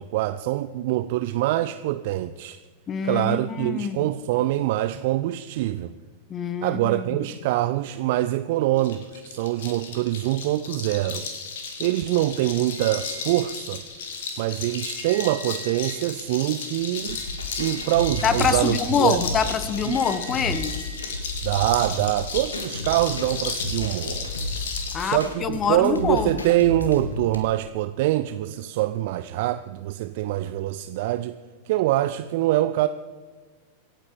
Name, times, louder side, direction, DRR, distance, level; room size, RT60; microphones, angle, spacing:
voice 1, 0.0-2.6 3.0-5.9 6.6-11.3 11.8-13.8 14.4-17.2 17.6-19.2 19.9-20.0 21.4-24.3 25.0-31.4 31.7-32.9, right 15 dB, 50° right, 12 dB, 0.4 m, -24 dB
voice 2, 2.9-4.1 6.3-7.2 18.2-20.7 24.9-26.3, left 7 dB, 25° left, 13 dB, 1.1 m, -25 dB
sound 1, 8.8-25.2, left 5 dB, 55° left, 2.3 m, -34 dB
sound 2, 12.3-13.9 14.3-14.4 14.6-16.2 16.7-21.1, right 1 dB, 85° right, 3.7 m, -46 dB
sound 3, 17.1-27.4, left 2 dB, 75° left, 1.8 m, -33 dB
25.5 x 9.0 x 4.7 m, 1.4 s
figure-of-eight pair, 90°, 0 cm